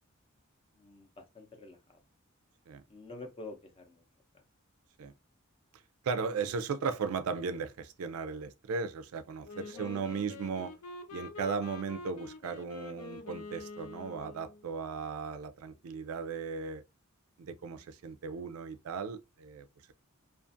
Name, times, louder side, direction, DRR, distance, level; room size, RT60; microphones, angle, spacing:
voice 1, 0.7-2.0 2.9-4.0 4.3-4.4 9.7-10.1, left 2 dB, 25° left, 0.6 m, -48 dB
voice 2, 6.0-10.7 11.1-16.8 17.4-19.9, right 5 dB, 80° right, 0.4 m, -36 dB
Wind instrument woodwind instrument, 9.4-14.6, left 3 dB, 90° left, 0.5 m, -46 dB
2.4 x 2.4 x 2.5 m
head